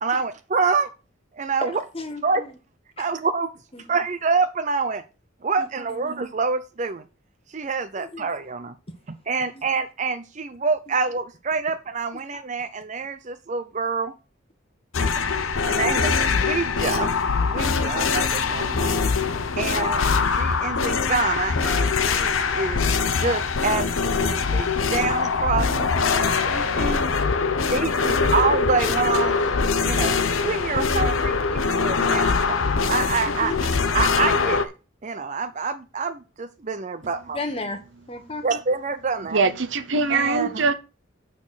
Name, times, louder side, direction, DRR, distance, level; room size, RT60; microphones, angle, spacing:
voice 1, 0.0-0.9 1.4-1.8 2.2-2.4 3.0-3.5 3.9-5.0 5.4-7.0 7.5-8.7 9.3-14.1 15.6-17.1 17.4-19.0 19.6-22.8 23.2-25.9 26.2-27.0 27.7-34.7 35.0-37.4 38.4-39.4 40.1-40.5, right 4 dB, 35° right, 0.5 m, -27 dB
voice 2, 1.6-2.5 3.7-3.8 5.6-6.1 8.0-8.3 9.5-9.6 15.2-15.4 33.4-33.6 37.3-37.8 38.1-38.4, left 2 dB, 30° left, 1.2 m, -34 dB
sound 1, 14.9-34.7, left 5 dB, 85° left, 0.8 m, -23 dB
voice 3, 39.3-40.8, right 4 dB, 65° right, 0.8 m, -22 dB
6.2 x 5.8 x 6.3 m
head